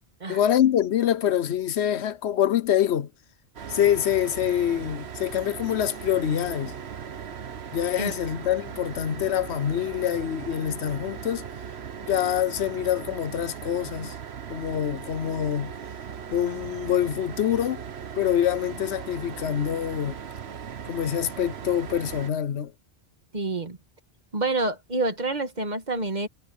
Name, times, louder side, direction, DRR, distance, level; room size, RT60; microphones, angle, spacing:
voice 1, 0.3-3.1 3.7-6.8 7.7-11.4 12.1-14.1 14.5-15.7 16.3-17.8 18.2-20.2 20.9-22.7, left 10 dB, 85° left, 1.0 m, -25 dB
sound 1, 3.6-22.3, right 7 dB, 75° right, 1.2 m, -38 dB
voice 2, 23.3-23.8 24.3-26.3, right 2 dB, 45° right, 1.8 m, -27 dB
omnidirectional pair, 1.1 m